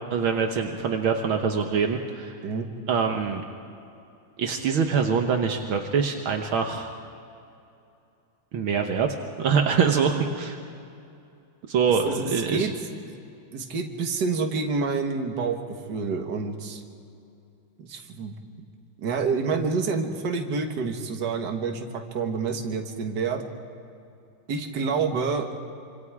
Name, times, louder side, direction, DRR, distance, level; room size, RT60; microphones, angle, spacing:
voice 1, 0.1-2.4 2.9-3.4 4.4-6.9 8.5-10.6 11.7-12.7, right 6 dB, 70° right, 4 dB, 1.9 m, -24 dB
voice 2, 12.0-12.7 13.5-15.6 15.9-16.8 17.8-18.4 19.0-21.9 22.1-23.4 24.5-25.5, right 4 dB, 55° right, 4 dB, 2.0 m, -28 dB
26.0 x 26.0 x 4.8 m, 2.6 s
omnidirectional pair, 2.3 m